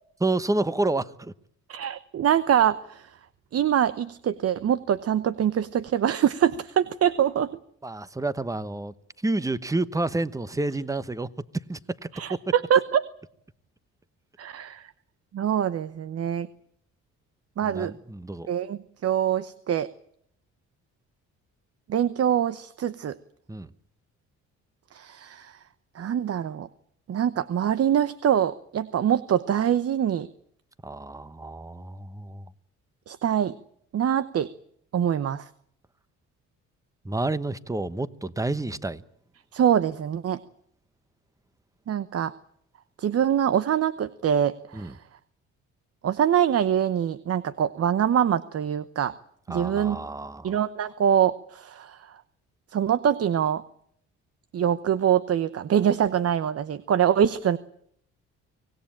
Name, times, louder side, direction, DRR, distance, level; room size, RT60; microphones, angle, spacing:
voice 1, 0.2-1.3 7.8-8.9 9.2-11.3 11.7-12.4 17.6-18.5 23.5-23.7 30.8-32.4 37.0-39.0 44.7-44.9 49.5-50.6, right 2 dB, 10° right, 1.0 m, -29 dB
voice 2, 1.7-3.2 3.5-7.5 12.1-13.0 14.4-14.9 15.3-16.5 17.6-17.9 18.5-19.9 21.9-23.2 24.9-25.6 25.9-26.7 27.1-30.3 33.1-33.6 33.9-34.5 34.9-35.5 39.5-40.4 41.9-42.3 43.0-45.0 46.0-49.1 49.5-50.0 50.4-52.2 52.7-53.6 54.5-57.6, right 9 dB, 55° right, 0.9 m, -24 dB
24.5 x 18.0 x 8.9 m
cardioid pair, 90°, 30 cm